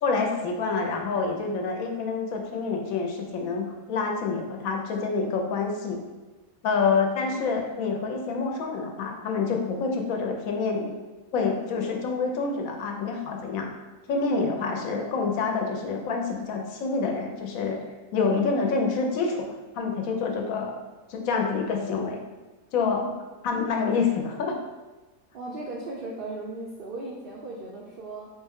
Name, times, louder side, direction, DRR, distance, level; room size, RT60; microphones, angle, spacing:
voice 1, 0.0-6.0 6.6-10.9 11.3-13.7 14.1-17.8 18.1-20.7 21.1-22.2 22.7-23.0 23.4-24.6, left 4 dB, 80° left, 2 dB, 1.1 m, -27 dB
voice 2, 25.3-28.3, right 2 dB, 70° right, -3 dB, 0.5 m, -37 dB
3.5 x 3.2 x 3.5 m, 1.2 s
omnidirectional pair, 1.4 m